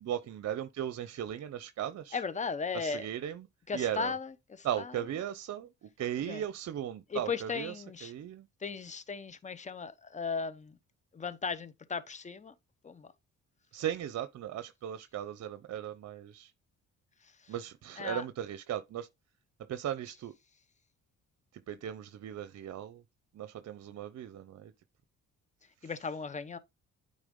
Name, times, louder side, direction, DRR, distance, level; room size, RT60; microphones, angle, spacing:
voice 1, 0.0-2.2 2.7-3.5 3.7-4.1 4.6-8.5 13.7-16.5 17.5-19.1 19.7-20.3 21.5-23.0 23.3-24.7 25.8-25.9, right 10 dB, 60° right, 0.7 m, -37 dB
voice 2, 2.1-3.1 3.7-4.9 6.3-6.4 7.1-8.1 8.6-10.8 11.1-12.5 12.8-13.1 18.0-18.2 25.8-26.6, left 5 dB, 25° left, 0.8 m, -36 dB
9.0 x 3.7 x 3.7 m
cardioid pair, 90°, 30 cm